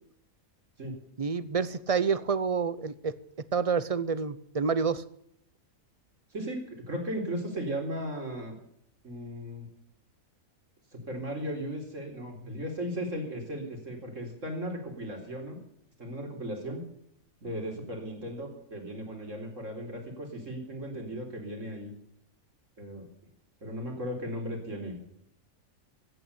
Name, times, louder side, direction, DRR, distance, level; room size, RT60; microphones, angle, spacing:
voice 1, 1.2-3.1 3.5-5.0, right 5 dB, 35° right, 16 dB, 0.6 m, -28 dB
voice 2, 6.3-8.6 9.0-9.7 10.9-15.6 16.0-16.8 17.4-21.9 22.8-23.1 23.6-25.0, equal, 60° right, 2 dB, 4.2 m, -36 dB
15.5 x 9.1 x 8.5 m, 0.72 s
omnidirectional pair, 1.5 m